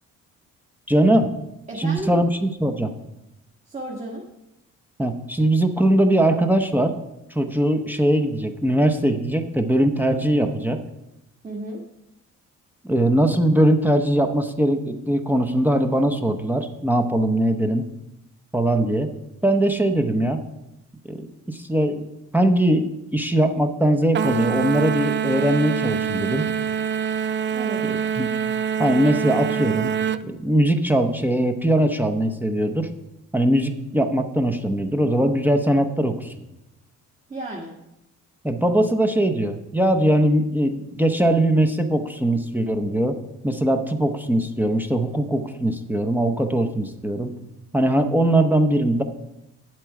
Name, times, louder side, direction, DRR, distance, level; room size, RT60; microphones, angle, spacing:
voice 1, 0.9-1.3 1.8-2.9 5.0-6.9 7.3-10.8 12.8-17.9 18.5-19.1 19.4-20.4 21.1-22.1 22.3-26.5 27.8-28.3 28.8-29.9 30.2-32.9 33.3-36.3 38.4-43.2 43.4-47.3 47.7-49.0, right 1 dB, 5° right, 5 dB, 0.8 m, -21 dB
voice 2, 1.7-2.2 3.7-4.2 11.4-11.8 27.5-27.8 37.3-37.7, right 1 dB, 25° right, -2 dB, 1.6 m, -32 dB
sound 1, 24.1-30.2, right 8 dB, 40° right, 0.4 m, -25 dB
9.3 x 7.5 x 4.8 m, 0.91 s
cardioid pair, 90°, 30 cm